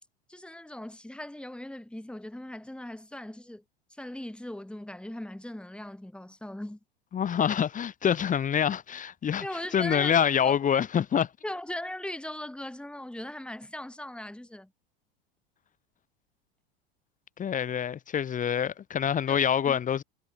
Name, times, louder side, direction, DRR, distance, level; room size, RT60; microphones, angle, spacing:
voice 1, 0.3-3.6 3.9-6.8 9.4-10.2 10.4-10.5 11.4-14.7 19.3-19.4 19.7-19.8, left 1 dB, 5° left, 4.3 m, -39 dB
voice 2, 7.1-9.4 9.7-11.3 17.4-20.0, left 8 dB, 25° left, 1.3 m, -26 dB
hypercardioid pair, 85°, 30 cm